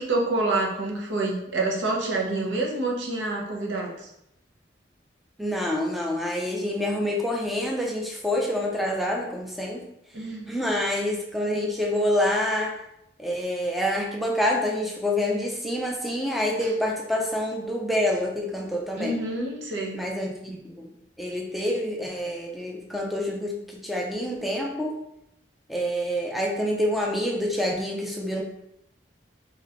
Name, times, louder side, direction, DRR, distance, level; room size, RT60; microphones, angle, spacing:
voice 1, 0.0-4.1 10.1-10.5 16.6-16.7 19.0-20.1, right 2 dB, 85° right, -1 dB, 0.8 m, -27 dB
voice 2, 5.4-9.9 10.5-12.7 13.2-19.1 19.9-20.9 21.2-25.0 25.7-28.4, left 1 dB, ahead, -1 dB, 0.4 m, -27 dB
4.2 x 3.1 x 2.5 m, 0.81 s
head